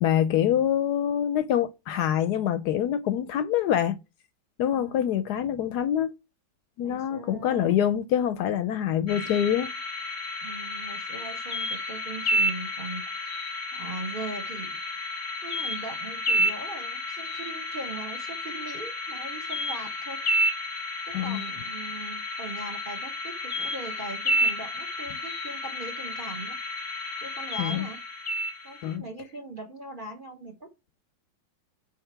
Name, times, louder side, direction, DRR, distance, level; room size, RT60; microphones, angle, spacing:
voice 1, 0.0-4.0 4.6-6.1 6.8-9.7 21.1-21.4 27.6-27.9 28.8-29.0, left 10 dB, 70° left, 1.0 m, -25 dB
voice 2, 4.6-5.2 6.8-7.8 10.4-13.3 13.7-14.8 15.4-20.2 21.1-26.6 27.2-28.0 28.6-30.7, right 2 dB, 40° right, 0.8 m, -40 dB
sound 1, 9.1-28.9, equal, 25° left, 0.9 m, -31 dB
6.5 x 4.4 x 4.5 m
omnidirectional pair, 2.0 m